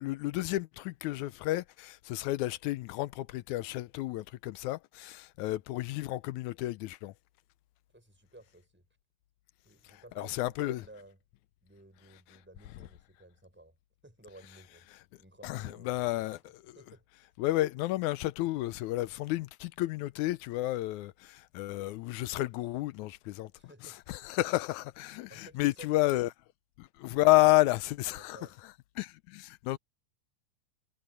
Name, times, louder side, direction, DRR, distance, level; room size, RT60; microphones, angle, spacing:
voice 1, 0.0-7.1 9.9-10.8 15.4-16.4 17.4-23.5 24.1-26.3 26.8-28.4 29.0-29.8, left 18 dB, 85° left, 2.1 m, -31 dB
voice 2, 7.9-8.9 9.6-11.2 11.6-13.8 14.0-14.8 15.2-16.3 16.8-17.1 23.6-24.0 25.3-25.9 28.1-28.6, right 1 dB, 5° right, 6.0 m, -54 dB
omnidirectional pair, 3.4 m